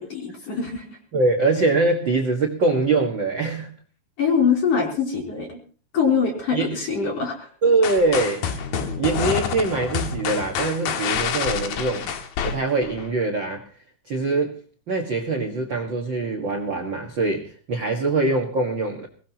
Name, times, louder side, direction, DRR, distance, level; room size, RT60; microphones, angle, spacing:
voice 1, 0.0-1.0 4.2-5.6 5.9-7.5, left 6 dB, 35° left, 0 dB, 4.5 m, -23 dB
voice 2, 1.1-3.7 6.5-6.8 7.6-8.6 9.0-12.1 12.4-13.6 14.1-14.6 14.9-19.1, right 3 dB, 60° right, 2 dB, 1.2 m, -23 dB
sound 1, 7.8-13.1, left 7 dB, 65° left, 3.0 m, -27 dB
22.5 x 18.0 x 3.0 m, 0.41 s
omnidirectional pair, 5.0 m